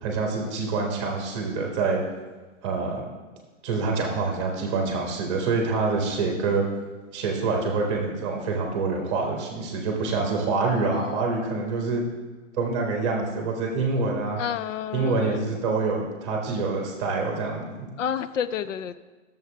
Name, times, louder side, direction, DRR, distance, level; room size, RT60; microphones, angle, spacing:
voice 1, 0.0-2.0 2.6-3.0 3.6-6.6 7.1-12.0 12.6-14.4 14.9-17.6, right 4 dB, 25° right, 0 dB, 1.2 m, -26 dB
voice 2, 10.7-11.3 14.4-15.5 18.0-19.0, left 8 dB, 75° left, 13 dB, 0.6 m, -30 dB
10.5 x 7.1 x 3.3 m, 1.3 s
hypercardioid pair, 170°, 38 cm